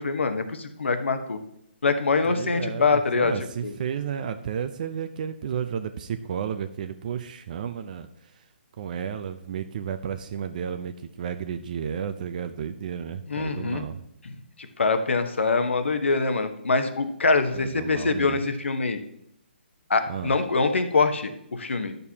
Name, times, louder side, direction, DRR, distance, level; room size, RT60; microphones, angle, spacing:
voice 1, 0.0-1.4 1.8-3.3 3.6-3.7 13.3-13.8 14.2-14.4 14.8-19.0 19.9-21.9, left 4 dB, 80° left, 9 dB, 1.1 m, -24 dB
voice 2, 2.3-8.1 8.8-14.1 17.5-18.4 20.1-20.3, right 8 dB, 45° right, 9 dB, 0.5 m, -32 dB
11.0 x 6.7 x 2.8 m, 0.75 s
hypercardioid pair, 150°, 6 cm